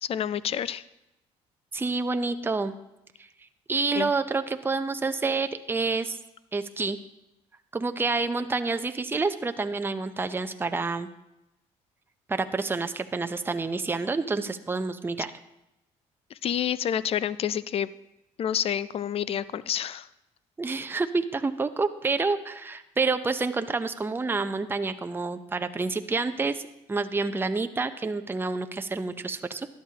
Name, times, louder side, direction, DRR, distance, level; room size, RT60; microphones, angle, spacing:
voice 1, 0.0-0.8 3.9-4.1 16.4-17.9 18.4-20.1, left 9 dB, 45° left, 17 dB, 0.4 m, -28 dB
voice 2, 1.7-2.7 3.7-6.2 6.5-7.0 7.7-11.1 12.3-15.3 20.6-29.7, right 3 dB, 15° right, 9 dB, 0.6 m, -28 dB
13.0 x 10.5 x 2.8 m, 0.91 s
supercardioid pair, 80°, 13 cm